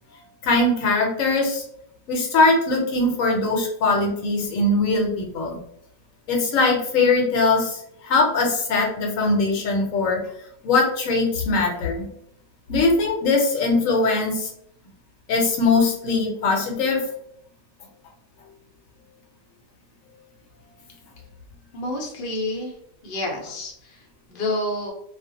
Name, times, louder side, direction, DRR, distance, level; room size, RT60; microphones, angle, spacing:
voice 1, 0.4-1.6 2.1-5.6 6.3-10.2 10.6-12.0 12.7-14.5 15.3-17.0, left 3 dB, 70° left, 0 dB, 1.0 m, -21 dB
voice 2, 21.7-22.8 23.0-24.9, left 2 dB, 50° left, 0 dB, 0.7 m, -29 dB
2.4 x 2.1 x 2.7 m, 0.71 s
omnidirectional pair, 1.4 m